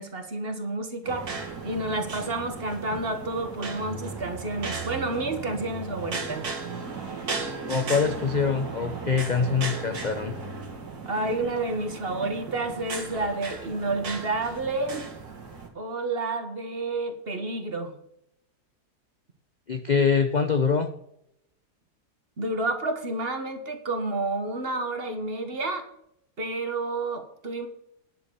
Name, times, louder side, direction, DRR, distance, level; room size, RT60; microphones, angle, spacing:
voice 1, 0.0-6.5 11.0-15.1 15.7-17.9 22.4-25.9 26.4-27.7, right 2 dB, 40° right, 7 dB, 1.5 m, -30 dB
sound 1, 1.0-15.7, right 4 dB, 70° right, 2.6 m, -36 dB
voice 2, 7.7-10.4 19.7-20.9, left 5 dB, 45° left, 7 dB, 0.6 m, -24 dB
10.5 x 7.1 x 6.7 m, 0.75 s
omnidirectional pair, 1.7 m